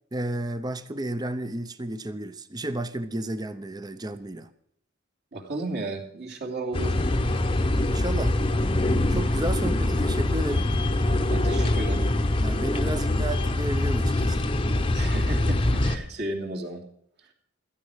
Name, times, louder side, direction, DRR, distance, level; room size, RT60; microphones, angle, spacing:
voice 1, 0.1-4.5 7.9-8.4 9.1-10.7 12.4-14.5, right 1 dB, 20° right, 0.7 m, -32 dB
voice 2, 5.3-7.0 11.3-12.0 14.9-16.8, right 2 dB, 50° right, 2.9 m, -33 dB
sound 1, 6.7-16.0, left 1 dB, 25° left, 0.9 m, -24 dB
15.5 x 13.5 x 4.9 m
head